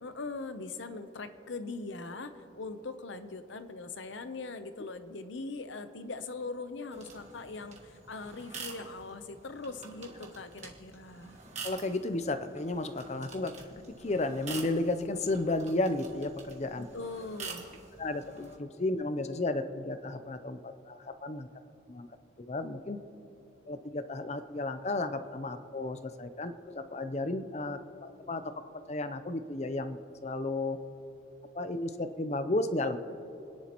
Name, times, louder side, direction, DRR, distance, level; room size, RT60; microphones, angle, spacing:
voice 1, 0.0-11.4 16.8-17.7, left 3 dB, 75° left, 10 dB, 0.8 m, -41 dB
sound 1, 6.9-18.6, right 5 dB, 35° right, 1.5 m, -47 dB
voice 2, 11.6-16.9 18.0-21.5 21.9-22.1 22.4-23.0 23.7-28.4 28.9-30.8 31.5-33.0, left 2 dB, 35° left, 10 dB, 0.6 m, -33 dB
29.5 x 10.5 x 3.0 m, 2.9 s
head